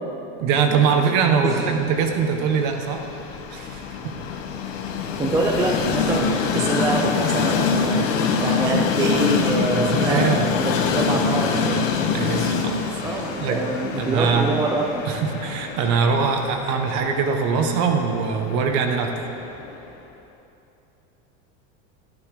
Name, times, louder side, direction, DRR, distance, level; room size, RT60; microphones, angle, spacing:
voice 1, 0.4-3.0 3.5-4.1 9.7-10.5 11.6-11.7 12.1-12.8 13.1-13.6 13.9-14.5 15.1-19.3, right 6 dB, 45° right, 4 dB, 1.3 m, -22 dB
Train, 1.8-19.9, left 5 dB, 90° left, 1.4 m, -25 dB
voice 2, 5.2-8.0 8.4-12.0 13.0-15.0, right 2 dB, 10° right, 0 dB, 0.5 m, -25 dB
13.0 x 11.0 x 4.9 m, 2.9 s
supercardioid pair, 160°, 38 cm